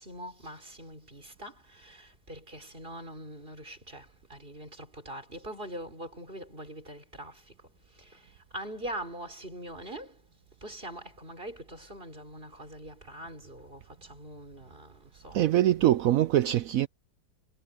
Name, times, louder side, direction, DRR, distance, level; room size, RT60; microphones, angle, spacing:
voice 1, 0.0-7.5 7.9-10.2 10.6-15.5, right 1 dB, 30° right, 4.9 m, -43 dB
voice 2, 15.3-16.9, right 13 dB, 75° right, 0.8 m, -23 dB
omnidirectional pair, 1.9 m